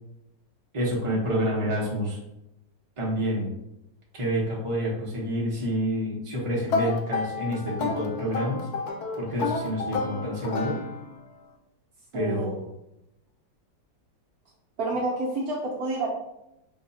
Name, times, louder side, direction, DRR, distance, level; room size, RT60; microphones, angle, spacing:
voice 1, 0.7-2.2 3.0-3.5 4.1-8.6 9.2-10.8 12.1-12.7, equal, 20° right, -5 dB, 1.0 m, -28 dB
Banjo opener, 6.7-11.3, left 4 dB, 70° left, 1.0 m, -31 dB
voice 2, 12.1-12.5 14.8-16.1, right 2 dB, 60° right, -4 dB, 1.2 m, -29 dB
5.8 x 2.8 x 2.7 m, 0.85 s
omnidirectional pair, 1.9 m